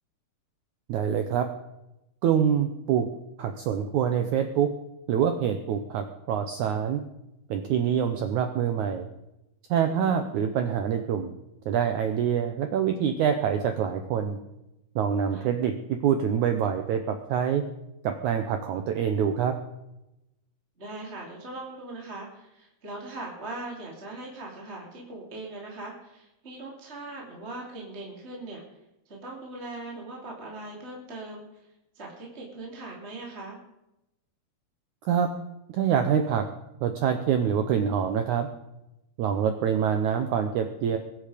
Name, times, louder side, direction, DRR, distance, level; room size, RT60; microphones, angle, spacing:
voice 1, 0.9-1.5 2.2-3.1 3.4-4.7 5.1-7.0 7.5-9.1 9.7-11.3 11.6-14.4 14.9-17.6 18.0-19.5 35.0-35.3 35.7-36.4 36.8-38.5 39.2-41.0, right 8 dB, 80° right, 7 dB, 1.7 m, -25 dB
voice 2, 9.9-10.2 15.3-15.5 20.8-28.6 29.1-31.5 31.9-33.6, right 2 dB, 20° right, -2 dB, 2.6 m, -40 dB
22.5 x 8.6 x 5.1 m, 0.91 s
omnidirectional pair, 4.6 m